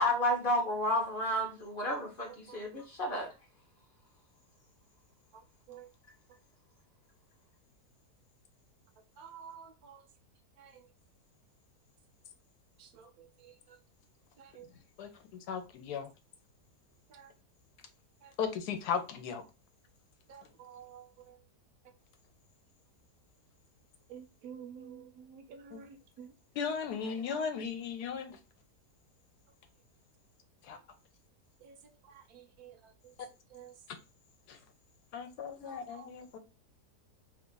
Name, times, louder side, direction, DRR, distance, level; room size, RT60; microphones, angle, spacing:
voice 1, 0.0-3.3, left 1 dB, 45° left, 0.8 m, -31 dB
voice 2, 9.2-10.0 10.6-10.8 12.8-13.5 14.4-14.7 17.1-17.3 18.2-18.3 20.3-21.4 24.1-26.3 31.6-31.8 32.1-33.1 33.5-33.7 35.6-36.1, right 7 dB, 70° right, 1.0 m, -51 dB
voice 3, 15.5-16.1 18.4-19.4 25.7-25.8 26.6-28.4 30.6-30.8 34.5-34.6 35.1-36.4, left 6 dB, 80° left, 1.2 m, -36 dB
2.8 x 2.4 x 3.7 m
omnidirectional pair, 1.7 m